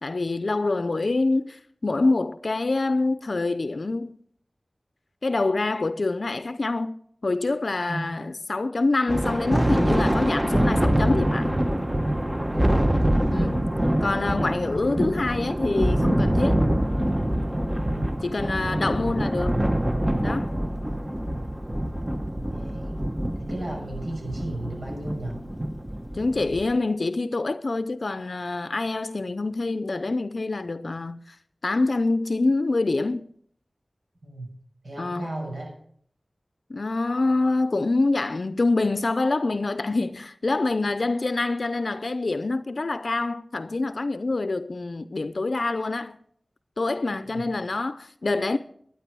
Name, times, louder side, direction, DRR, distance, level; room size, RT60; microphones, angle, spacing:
voice 1, 0.0-4.2 5.2-7.0 7.2-11.6 13.3-16.6 18.2-19.6 20.2-20.5 26.1-31.4 31.6-33.3 35.0-35.3 36.7-46.2 46.8-48.6, left 3 dB, 70° left, 0.5 m, -26 dB
Thunder, 9.1-26.8, right 1 dB, 20° right, 1.0 m, -25 dB
voice 2, 12.5-12.9 17.8-18.9 20.9-21.0 22.5-23.0 23.4-25.4 34.2-34.5 34.8-35.7 47.3-47.4, right 1 dB, 70° right, 6.1 m, -35 dB
12.5 x 9.6 x 6.1 m
wide cardioid pair, 65°, 0 cm